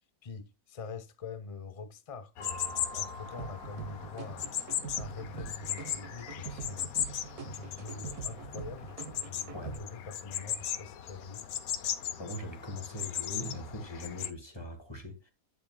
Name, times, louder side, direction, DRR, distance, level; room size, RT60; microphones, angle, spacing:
voice 1, 0.2-4.5 4.9-6.9 7.4-11.4, left 4 dB, 35° left, 0.6 m, -44 dB
sound 1, 2.4-14.3, left 10 dB, 70° left, 1.2 m, -37 dB
Mallet percussion, 2.4-5.0, right 2 dB, 20° right, 1.7 m, -48 dB
sound 2, 3.4-9.8, right 6 dB, 75° right, 1.6 m, -44 dB
voice 2, 12.2-15.3, left 1 dB, 15° left, 1.7 m, -41 dB
10.0 x 7.2 x 2.2 m
omnidirectional pair, 1.6 m